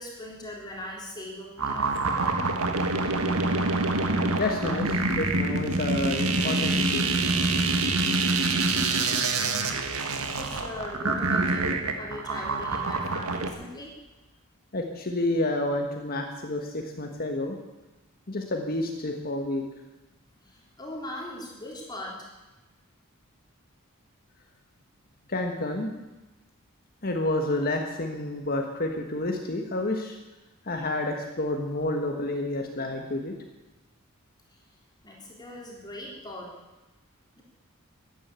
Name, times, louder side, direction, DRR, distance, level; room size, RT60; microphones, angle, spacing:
voice 1, 0.0-2.4 10.3-14.0 20.4-22.3 34.5-34.6 35.0-36.5 37.3-37.4, left 1 dB, 20° left, -2 dB, 3.5 m, -40 dB
sound 1, 1.6-13.5, right 3 dB, 90° right, 1.6 m, -26 dB
voice 2, 4.4-7.1 14.7-17.6 18.3-19.6 25.3-25.9 27.0-30.2 30.6-33.4, left 2 dB, 45° left, 3 dB, 1.5 m, -29 dB
13.5 x 10.0 x 8.3 m, 1.1 s
head